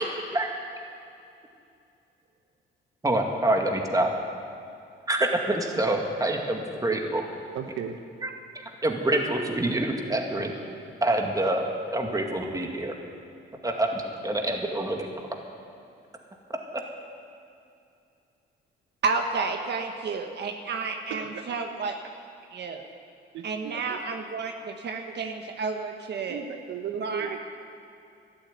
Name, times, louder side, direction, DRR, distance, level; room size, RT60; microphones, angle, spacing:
voice 1, 3.0-4.1 5.1-7.2 8.2-8.3 8.8-10.5 11.0-12.9 13.6-15.1, right 1 dB, 20° right, 2 dB, 2.3 m, -26 dB
voice 2, 7.5-8.0 9.3-9.4 21.1-21.4 23.3-24.0 26.3-27.4, right 7 dB, 80° right, 5 dB, 1.1 m, -35 dB
voice 3, 19.0-22.0 22.5-22.9 23.4-26.4 27.0-27.4, right 4 dB, 60° right, 4 dB, 1.3 m, -31 dB
13.0 x 11.5 x 9.5 m, 2.5 s
cardioid pair, 90°, 20 cm